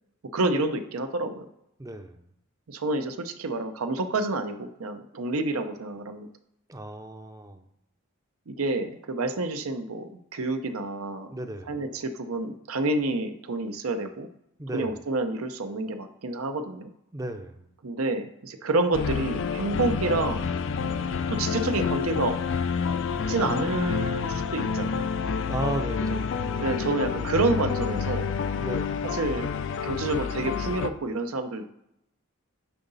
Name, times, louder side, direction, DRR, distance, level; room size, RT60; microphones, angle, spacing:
voice 1, 0.3-1.5 2.7-6.3 8.5-11.3 11.7-14.3 14.7-16.9 17.8-20.4 21.3-22.4 23.3-25.1 26.6-28.3 29.1-29.5 29.8-31.6, right 2 dB, 85° right, 8 dB, 0.7 m, -28 dB
voice 2, 1.8-2.3 6.7-7.6 11.3-11.8 14.6-15.0 17.1-17.7 25.5-26.3 28.6-29.1, right 1 dB, 15° right, 8 dB, 0.5 m, -35 dB
sound 1, 18.9-30.9, left 5 dB, 60° left, 0.4 m, -28 dB
9.2 x 3.9 x 4.0 m, 0.80 s
head